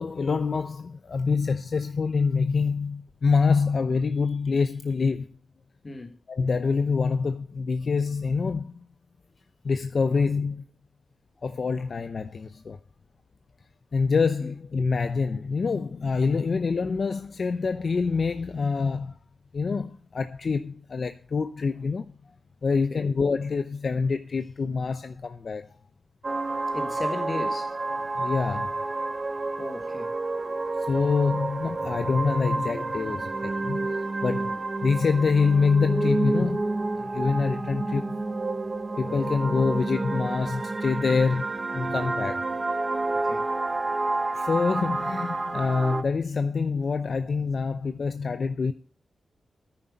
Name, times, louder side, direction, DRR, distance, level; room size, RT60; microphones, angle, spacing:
voice 1, 0.0-5.3 6.3-8.8 9.6-10.6 11.4-12.8 13.9-19.2 19.5-22.1 22.6-25.7 28.2-28.8 30.5-34.5 34.8-36.6 36.9-38.2 39.0-41.5 41.7-42.4 44.4-48.7, left 4 dB, 55° left, 0.6 m, -26 dB
voice 2, 5.8-6.2 14.4-14.5 16.2-16.4 22.7-23.1 26.7-27.8 29.6-30.2 34.3-34.6 43.1-43.5, left 2 dB, 35° left, 1.5 m, -37 dB
sound 1, 26.2-46.0, right 2 dB, 35° right, 1.0 m, -29 dB
9.9 x 9.9 x 5.1 m
wide cardioid pair, 95°, 0 cm